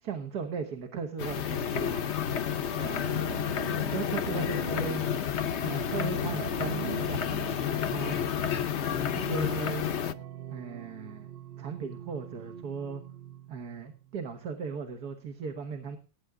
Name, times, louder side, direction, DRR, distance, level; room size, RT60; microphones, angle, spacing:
voice 1, 0.0-2.0 2.8-3.0 3.9-5.0 5.6-8.2 9.2-9.8 10.5-13.0 13.5-16.0, right 5 dB, 80° right, 6 dB, 1.9 m, -37 dB
sound 1, 1.2-10.1, left 8 dB, 55° left, 0.9 m, -30 dB
sound 2, 2.3-14.3, right 10 dB, 50° right, 0.8 m, -44 dB
18.5 x 9.4 x 3.7 m, 0.34 s
omnidirectional pair, 1.6 m